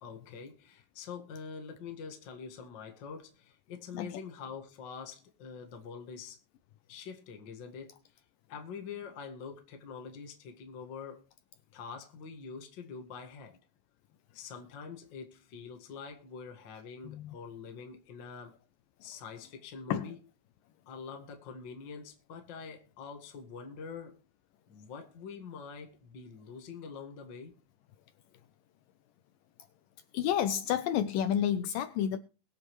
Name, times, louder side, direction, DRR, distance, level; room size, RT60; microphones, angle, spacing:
voice 1, 0.0-6.4 6.9-8.2 8.5-11.2 11.7-13.6 14.3-18.6 19.0-20.2 20.8-24.2 24.7-27.6, left 5 dB, 45° left, 1.6 m, -45 dB
voice 2, 30.1-32.2, left 10 dB, 80° left, 2.2 m, -30 dB
21.5 x 7.4 x 3.1 m
omnidirectional pair, 4.3 m